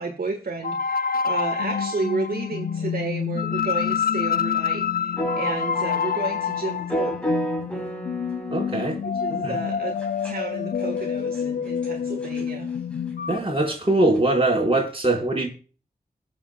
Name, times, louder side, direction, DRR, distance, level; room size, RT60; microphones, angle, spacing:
voice 1, 0.0-7.2 9.2-10.0 10.2-12.7, right 3 dB, 70° right, 1.5 m, -32 dB
sound 1, 0.6-13.4, left 7 dB, 65° left, 0.5 m, -27 dB
sound 2, 5.1-9.0 10.0-10.4 11.0-11.1 11.4-11.5 11.8-11.9 12.2-12.4 14.2-14.3, equal, 5° left, 4.0 m, -30 dB
voice 2, 8.5-9.0 9.3-9.6 13.3-15.5, right 2 dB, 35° right, 4.5 m, -22 dB
21.5 x 7.2 x 2.3 m
cardioid pair, 45°, 16 cm